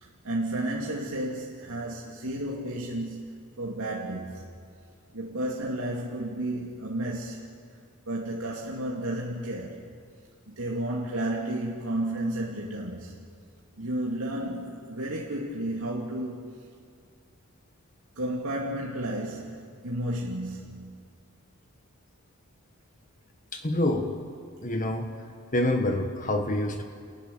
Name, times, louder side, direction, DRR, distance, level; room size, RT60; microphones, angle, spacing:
voice 1, 0.0-3.2 3.6-4.5 5.1-7.5 8.1-9.9 10.5-13.2 13.8-16.6 18.2-20.9, right 1 dB, 85° right, -3 dB, 2.5 m, -32 dB
voice 2, 23.5-24.1 24.6-25.1 25.5-26.8, left 1 dB, 40° left, 5 dB, 1.6 m, -26 dB
30.0 x 19.0 x 7.1 m, 2.2 s
head